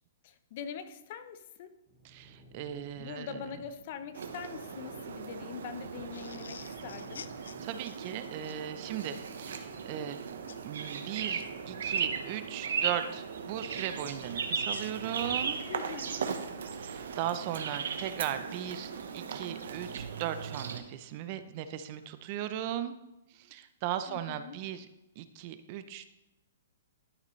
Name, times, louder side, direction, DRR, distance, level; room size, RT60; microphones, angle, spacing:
voice 1, 0.2-1.7 3.0-7.3 15.7-16.2 24.1-24.6, left 7 dB, 40° left, 10 dB, 0.7 m, -43 dB
sound 1, 1.9-15.7, equal, 10° right, 3.1 m, -58 dB
voice 2, 2.0-3.4 7.6-10.2 10.6-15.6 16.8-22.9 23.3-24.9 25.2-26.1, right 11 dB, 35° right, 11 dB, 0.5 m, -37 dB
sound 2, 4.1-20.8, right 6 dB, 75° right, 1.0 m, -37 dB
sound 3, 6.1-8.6 10.5-10.7 11.3-12.0 14.2-16.1, left 6 dB, 85° left, 0.5 m, -51 dB
12.0 x 6.5 x 3.2 m, 0.98 s
hypercardioid pair, 160°, 0 cm